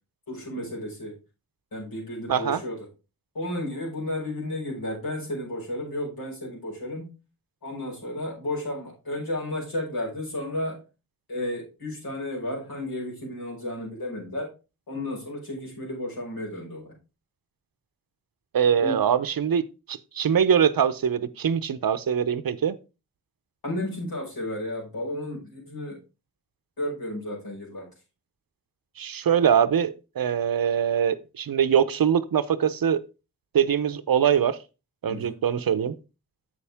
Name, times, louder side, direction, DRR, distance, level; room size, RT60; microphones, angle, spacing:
voice 1, 0.3-1.2 1.7-2.8 3.3-7.1 7.6-10.8 11.3-14.5 14.9-16.9 18.8-19.0 23.6-26.0 26.8-27.9 35.1-35.4, left 1 dB, 70° left, 5.5 m, -33 dB
voice 2, 2.3-2.6 18.5-22.8 29.0-33.0 33.5-34.6 35.0-36.0, right 8 dB, 65° right, 0.7 m, -23 dB
7.7 x 7.0 x 3.5 m
cardioid pair, 50°, 37 cm